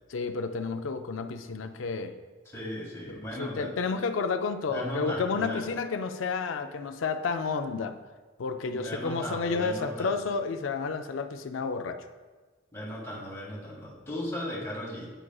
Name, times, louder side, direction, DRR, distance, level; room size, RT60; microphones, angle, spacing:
voice 1, 0.1-2.2 3.1-8.0 8.4-12.1, left 4 dB, 80° left, 8 dB, 0.4 m, -31 dB
voice 2, 2.5-3.8 4.7-5.7 8.7-10.2 12.7-15.1, equal, 15° left, -6 dB, 1.7 m, -36 dB
8.9 x 4.8 x 2.3 m, 1.3 s
head